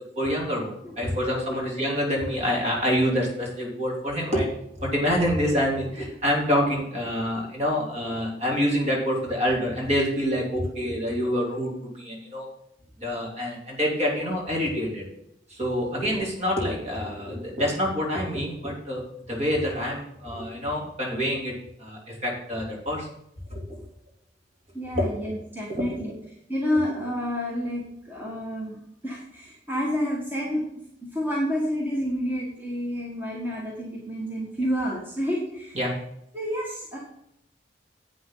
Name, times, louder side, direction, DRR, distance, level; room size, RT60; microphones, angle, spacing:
voice 1, 0.1-4.5 4.8-12.5 13.0-15.0 15.5-19.0 19.3-21.5 21.8-23.1 23.5-23.8 24.9-25.1 25.8-26.0 26.7-26.9 35.7-35.9, equal, 35° right, -2 dB, 3.4 m, -26 dB
voice 2, 1.3-1.6 24.7-26.1 26.5-30.6 31.0-35.8 36.3-37.0, equal, 10° right, -4 dB, 1.8 m, -29 dB
11.0 x 8.6 x 4.0 m, 0.77 s
head